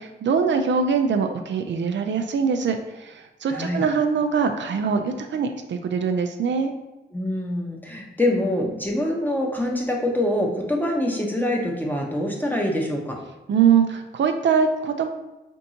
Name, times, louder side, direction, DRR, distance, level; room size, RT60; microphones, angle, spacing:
voice 1, 0.0-6.7 13.5-15.1, right 6 dB, 65° right, 6 dB, 0.4 m, -23 dB
voice 2, 3.5-3.8 7.1-13.2, left 1 dB, 10° left, 0 dB, 0.9 m, -25 dB
4.4 x 2.6 x 2.8 m, 1.0 s
cardioid pair, 55°, 20 cm